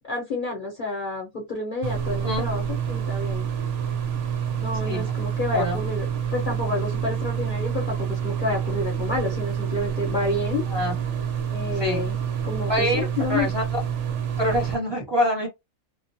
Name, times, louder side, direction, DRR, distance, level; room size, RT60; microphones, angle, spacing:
voice 1, 0.1-3.5 4.6-10.6 11.5-12.2 12.4-13.5, left 2 dB, 45° left, 0.9 m, -29 dB
sound 1, 1.8-14.8, right 8 dB, 70° right, 0.8 m, -28 dB
voice 2, 12.7-13.6 14.4-15.5, equal, 20° right, 0.9 m, -25 dB
2.3 x 2.1 x 2.6 m
omnidirectional pair, 1.4 m